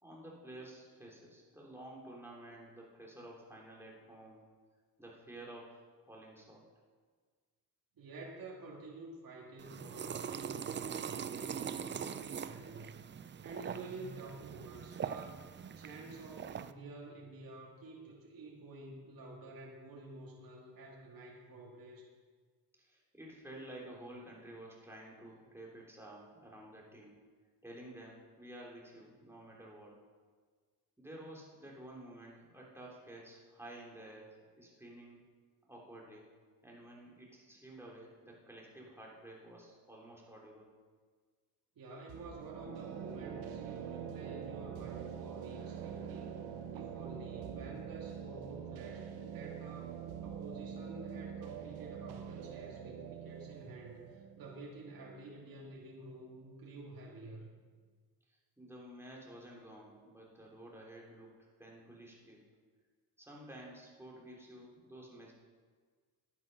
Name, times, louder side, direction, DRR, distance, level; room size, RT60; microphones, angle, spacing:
voice 1, 0.0-4.4 5.0-6.7 22.8-27.2 27.6-30.0 31.0-35.2 35.7-36.3 36.6-40.7 58.3-61.3 61.6-62.4 63.2-65.3, right 1 dB, 5° right, -3 dB, 3.4 m, -52 dB
voice 2, 8.0-13.0 13.4-15.5 15.8-22.1 41.8-46.4 46.7-57.5, right 2 dB, 65° right, -2 dB, 2.3 m, -50 dB
sound 1, 9.6-16.7, right 7 dB, 30° right, 0.4 m, -42 dB
sound 2, 42.1-55.8, right 8 dB, 85° right, 1.0 m, -45 dB
10.5 x 9.0 x 5.5 m, 1.5 s
cardioid pair, 90°, 37 cm